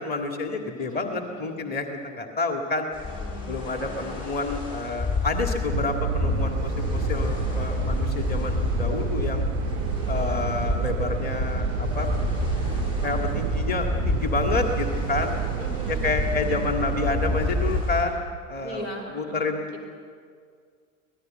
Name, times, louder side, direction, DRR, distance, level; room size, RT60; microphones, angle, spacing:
voice 1, 0.0-2.9 3.5-9.5 10.1-12.1 13.0-15.3 15.9-18.2 18.5-18.9 19.1-19.8, left 3 dB, 25° left, 4 dB, 2.1 m, -29 dB
voice 2, 0.7-1.7 3.0-4.1 10.1-10.6 15.6-16.6 18.6-19.5, right 1 dB, 80° left, 3 dB, 4.2 m, -41 dB
sound 1, 2.9-18.0, left 4 dB, 40° left, 5.9 m, -29 dB
sound 2, 5.7-17.8, right 16 dB, 60° right, 0.5 m, -30 dB
25.0 x 18.5 x 7.7 m, 2.1 s
figure-of-eight pair, 80°, 39 cm